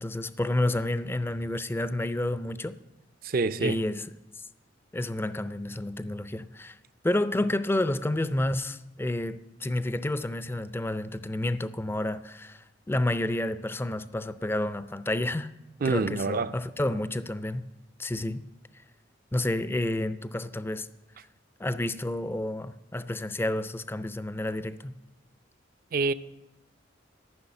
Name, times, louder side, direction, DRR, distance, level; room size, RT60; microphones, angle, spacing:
voice 1, 0.0-2.8 3.6-4.0 4.4-4.5 4.9-6.8 7.0-15.5 15.8-17.7 18.0-18.4 19.3-20.9 21.6-24.9, left 1 dB, 10° left, 0.4 m, -30 dB
voice 2, 3.2-3.8 15.8-16.5 25.9-26.1, right 4 dB, 50° right, 0.5 m, -26 dB
14.0 x 6.2 x 9.7 m
head